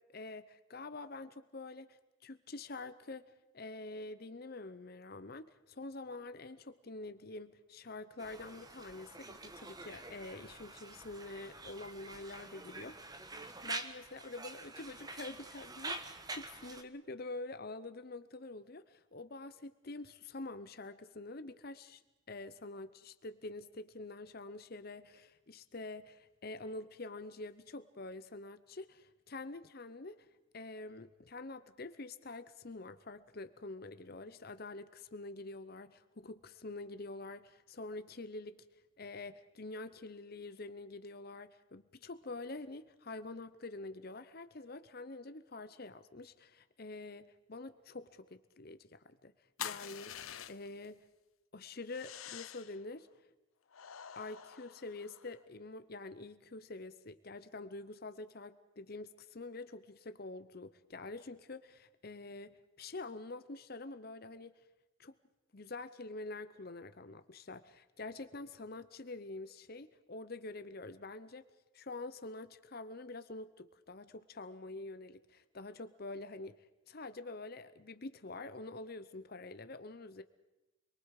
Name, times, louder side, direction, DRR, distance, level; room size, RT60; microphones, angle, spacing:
voice 1, 0.1-3.3 3.5-13.0 13.6-22.0 22.3-30.3 30.5-38.6 39.0-49.3 49.6-51.0 51.5-53.1 54.1-64.6 65.0-65.1 65.5-71.4 71.7-76.6 76.9-80.2, left 2 dB, 50° left, 12 dB, 0.8 m, -46 dB
Conversation, 8.2-16.8, right 2 dB, 20° right, 1.2 m, -46 dB
sound 1, 49.6-50.9 51.9-52.8 53.7-55.4, left 10 dB, 85° left, 0.7 m, -46 dB
29.0 x 23.0 x 4.9 m, 0.99 s
head